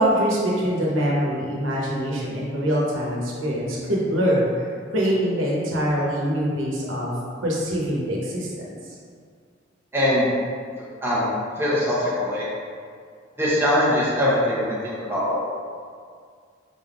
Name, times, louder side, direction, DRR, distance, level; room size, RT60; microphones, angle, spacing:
voice 1, 0.0-7.1 7.4-8.7, equal, 90° right, -4 dB, 0.9 m, -24 dB
voice 2, 9.9-10.3 11.0-11.3 11.6-12.5 13.4-15.4, left 1 dB, 10° right, -8 dB, 0.7 m, -22 dB
3.9 x 3.4 x 2.4 m, 2.1 s
head